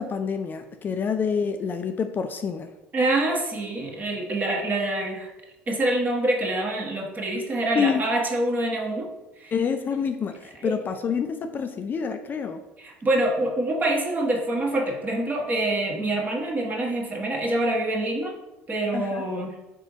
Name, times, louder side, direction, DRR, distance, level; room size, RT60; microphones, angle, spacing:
voice 1, 0.0-2.7 7.7-8.0 9.5-12.6 18.9-19.2, left 6 dB, 35° left, 8 dB, 0.3 m, -27 dB
voice 2, 2.9-5.3 5.7-9.1 9.4-9.5 10.6-10.8 12.8-18.3 18.7-19.5, right 1 dB, 30° right, 0 dB, 1.1 m, -26 dB
3.6 x 3.3 x 4.0 m, 0.99 s
hypercardioid pair, 75°, 6 cm